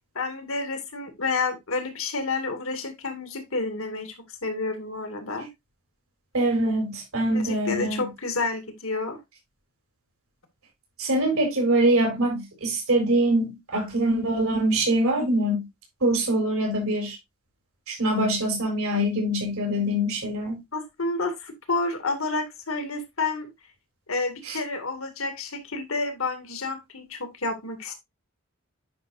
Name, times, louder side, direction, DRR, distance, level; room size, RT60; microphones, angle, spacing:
voice 1, 0.1-5.5 7.3-9.2 20.7-23.5 24.1-27.9, left 3 dB, 65° left, 2.2 m, -30 dB
voice 2, 6.3-8.0 11.0-15.6 16.0-17.2 17.9-20.6 24.5-24.6, right 1 dB, 70° right, 4.0 m, -24 dB
9.7 x 5.9 x 2.6 m
head